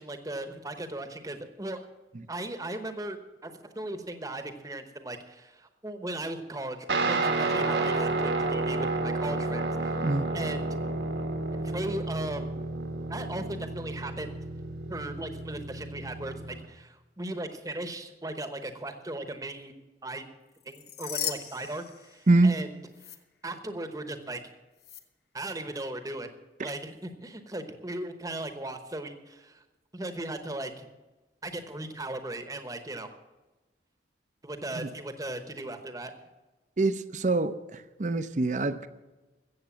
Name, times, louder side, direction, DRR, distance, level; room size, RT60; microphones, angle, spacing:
voice 1, 0.0-1.9 2.3-3.2 3.4-10.1 10.3-10.7 11.6-12.6 13.1-14.4 14.9-19.7 20.0-20.3 20.6-22.7 23.4-24.4 25.3-26.3 26.6-29.6 29.9-30.9 31.4-33.1 34.4-36.1, right 1 dB, 20° right, 1.0 m, -37 dB
Guitar, 6.9-16.6, right 2 dB, 75° right, 1.5 m, -31 dB
sound 1, 20.6-22.6 22.9-23.2 24.8-25.0, left 10 dB, 60° left, 1.1 m, -37 dB
voice 2, 36.8-38.9, right 2 dB, 40° right, 0.6 m, -25 dB
14.5 x 8.0 x 7.2 m
head